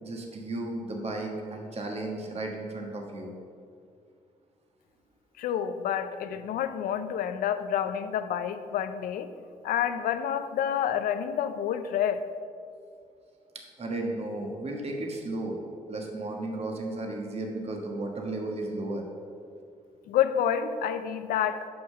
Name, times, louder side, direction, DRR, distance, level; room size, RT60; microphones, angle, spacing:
voice 1, 0.0-3.3 6.0-6.1 13.8-15.6 15.9-19.0, right 2 dB, 45° right, 1 dB, 1.5 m, -34 dB
voice 2, 5.4-9.3 9.6-12.2 20.1-21.6, left 9 dB, 75° left, 11 dB, 0.5 m, -28 dB
6.8 x 5.6 x 6.5 m, 2.3 s
supercardioid pair, 55°, 15 cm